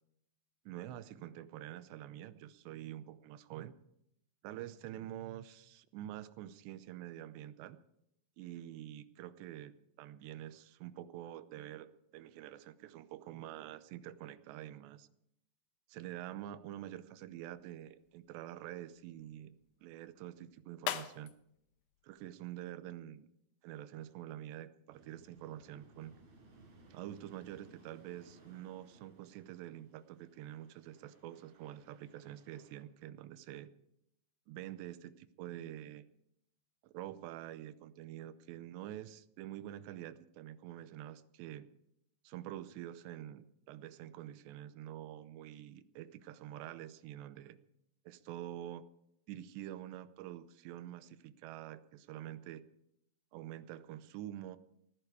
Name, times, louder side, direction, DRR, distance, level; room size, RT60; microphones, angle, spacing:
voice 1, 0.7-3.7 4.4-7.8 8.4-11.9 12.1-15.1 15.9-21.3 22.0-23.3 23.6-26.1 26.9-33.7 34.5-36.1 36.8-41.7 42.2-47.6 48.1-48.9 49.3-52.7 53.3-54.6, right 12 dB, 90° right, 14 dB, 3.0 m, -47 dB
Glass Breaking, 17.2-23.2, left 12 dB, 85° left, 3.0 m, -47 dB
sound 1, 24.9-32.8, right 3 dB, 60° right, 6.5 m, -63 dB
18.5 x 15.0 x 4.8 m, 0.76 s
omnidirectional pair, 4.9 m